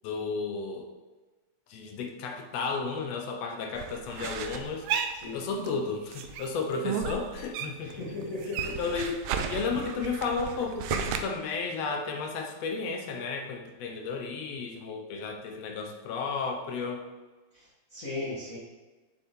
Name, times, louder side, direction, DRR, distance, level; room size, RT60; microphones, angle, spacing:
voice 1, 0.0-0.9 1.7-8.2 8.8-17.0, left 4 dB, 65° left, 3 dB, 1.9 m, -33 dB
sound 1, 3.7-5.8 6.1-8.0 8.2-11.2, right 7 dB, 90° right, 1.3 m, -34 dB
voice 2, 7.8-8.8 17.5-18.6, left 2 dB, 35° left, -9 dB, 1.7 m, -37 dB
7.3 x 6.9 x 3.7 m, 1.3 s
omnidirectional pair, 3.5 m